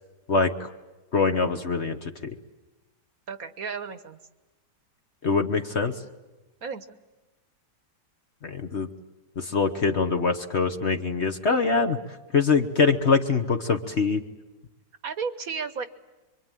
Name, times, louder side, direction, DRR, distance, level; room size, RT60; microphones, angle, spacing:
voice 1, 0.3-0.7 1.1-2.3 5.2-5.9 8.4-8.9 9.4-12.0 12.3-14.2, left 4 dB, 40° left, 6 dB, 1.2 m, -24 dB
voice 2, 3.3-4.2 6.6-7.0 15.0-15.9, right 5 dB, 55° right, 11 dB, 1.4 m, -33 dB
26.5 x 24.0 x 9.1 m, 1.1 s
omnidirectional pair, 1.9 m